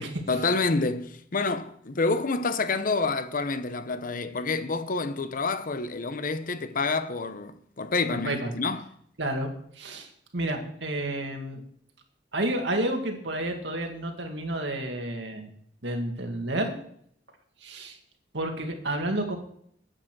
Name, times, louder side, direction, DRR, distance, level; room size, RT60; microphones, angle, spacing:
voice 1, 0.3-8.9, left 3 dB, 50° left, 0.8 m, -28 dB
voice 2, 8.1-8.5 9.2-9.5 9.8-10.1 10.3-11.6 12.3-15.5 15.8-16.7 17.6-18.0 18.3-19.4, right 1 dB, 90° right, 2.1 m, -30 dB
9.8 x 8.8 x 6.1 m
head